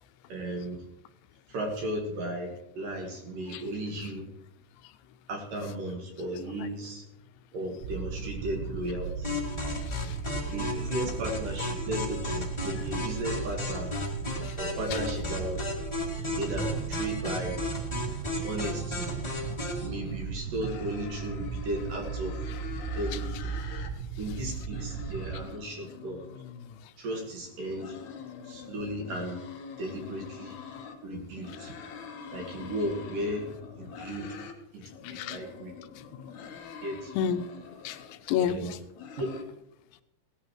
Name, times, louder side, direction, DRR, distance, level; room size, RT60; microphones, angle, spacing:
voice 1, 0.3-0.8 1.5-4.3 5.3-7.0 7.5-9.4 10.5-14.0 14.6-15.6 16.3-17.6 18.3-19.1 19.8-22.4 22.9-23.5 24.2-26.2 27.0-28.0 28.4-29.4 29.8-30.6 31.0-31.7 32.3-34.4 34.7-35.7 36.8-37.1 38.4-38.7 39.2-39.4, right 1 dB, 60° right, 2.9 m, -35 dB
sound 1, 7.8-25.5, right 6 dB, 85° right, 2.8 m, -37 dB
sound 2, 9.2-19.9, left 2 dB, 20° left, 0.7 m, -34 dB
voice 2, 9.8-10.2 14.4-14.6 23.7-23.8 35.0-35.4 37.2-37.4 37.8-38.8, left 8 dB, 85° left, 3.0 m, -31 dB
sound 3, 19.8-20.2 20.6-23.9 24.2-26.8 27.5-31.0 31.3-34.6 34.9-38.2 38.7-39.4, left 6 dB, 65° left, 2.0 m, -44 dB
18.0 x 14.0 x 3.1 m
omnidirectional pair, 5.1 m